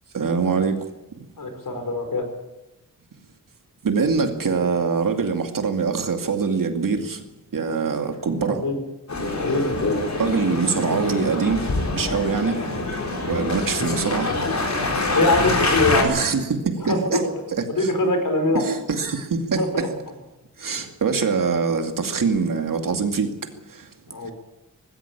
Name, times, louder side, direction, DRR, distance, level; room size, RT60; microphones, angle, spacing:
voice 1, 0.1-0.9 1.2-1.3 3.8-7.2 7.5-8.6 10.2-12.6 13.3-14.3 16.0-17.2 17.5-17.9 18.5-19.9 20.6-23.3 23.7-23.9 24.2-24.3, right 5 dB, 75° right, 5 dB, 2.5 m, -24 dB
voice 2, 1.4-2.3 8.4-8.8 9.3-9.7 15.1-16.2 16.8-17.3 17.7-18.6 19.6-19.9 24.1-24.3, left 2 dB, 75° left, 6 dB, 5.1 m, -23 dB
Male speech man speaking, 9.1-16.0, left 2 dB, 55° left, 4.6 m, -25 dB
19.5 x 16.0 x 8.6 m, 1.0 s
wide cardioid pair, 125°, 33 cm